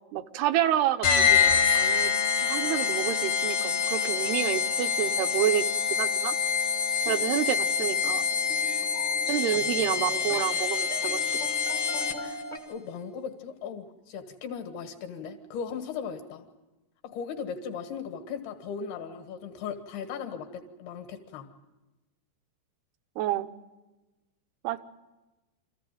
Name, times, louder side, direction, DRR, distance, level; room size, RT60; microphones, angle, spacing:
voice 1, 0.1-2.1 2.4-5.6 5.9-6.3 7.1-8.2 9.3-11.3 23.2-23.5 24.6-24.8, right 12 dB, 80° right, 9 dB, 2.8 m, -29 dB
sound 1, 1.0-12.4, left 6 dB, 55° left, 1.6 m, -26 dB
sound 2, 7.0-12.6, equal, 40° left, 0.6 m, -43 dB
voice 2, 12.7-16.5 17.0-21.5, left 6 dB, 75° left, 5 dB, 3.6 m, -37 dB
25.5 x 15.0 x 9.2 m, 1.1 s
omnidirectional pair, 4.6 m